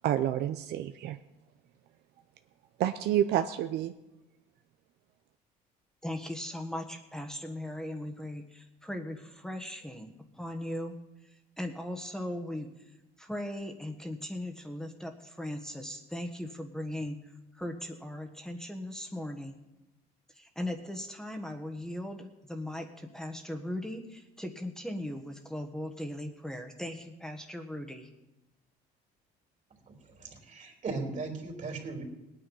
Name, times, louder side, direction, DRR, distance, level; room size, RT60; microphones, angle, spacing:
voice 1, 0.0-1.2 2.8-3.9, right 11 dB, 75° right, 9 dB, 0.7 m, -29 dB
voice 2, 6.0-12.9 13.2-19.6 20.3-28.1, left 1 dB, 5° left, 3 dB, 1.4 m, -38 dB
voice 3, 29.9-32.0, right 3 dB, 45° right, 3 dB, 3.5 m, -38 dB
18.5 x 9.3 x 5.5 m, 0.97 s
cardioid pair, 95°, 17 cm